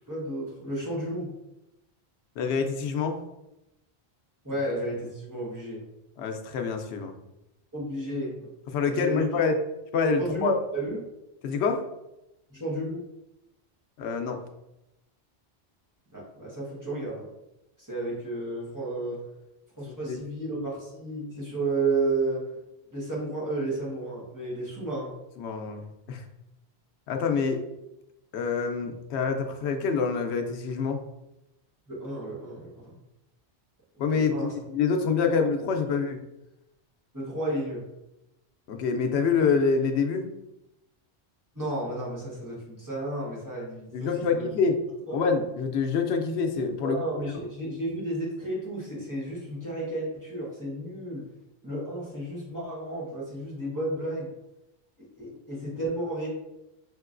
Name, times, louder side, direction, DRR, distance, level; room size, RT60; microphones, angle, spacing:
voice 1, 0.1-1.3 4.4-5.8 7.7-8.5 8.9-9.3 10.2-11.0 12.5-13.0 16.1-17.3 17.8-19.2 19.8-22.6 22.9-25.1 31.9-32.9 34.1-34.6 35.3-35.4 37.1-37.8 41.5-44.5 46.8-51.3 51.6-54.3 55.0-56.3, right 2 dB, 20° right, -6 dB, 1.1 m, -32 dB
voice 2, 2.4-3.2 6.2-7.1 8.7-9.6 9.9-10.6 11.4-11.8 14.0-14.4 19.9-20.2 25.4-26.3 27.1-27.6 28.3-31.0 34.0-36.2 38.7-40.3 43.9-44.8 45.1-47.0, left 5 dB, 85° left, 5 dB, 0.9 m, -26 dB
5.3 x 2.9 x 2.4 m, 0.91 s
omnidirectional pair, 1.1 m